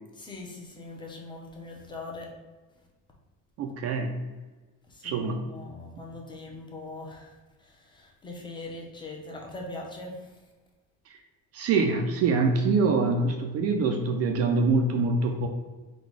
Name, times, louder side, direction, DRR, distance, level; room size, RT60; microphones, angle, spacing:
voice 1, 0.1-2.3 4.9-10.4, left 2 dB, 15° left, -1 dB, 0.6 m, -41 dB
voice 2, 3.6-4.2 5.0-5.5 11.1-11.2 11.5-15.5, right 3 dB, 45° right, 4 dB, 0.4 m, -25 dB
3.9 x 2.3 x 4.6 m, 1.2 s
cardioid pair, 155°, 34 cm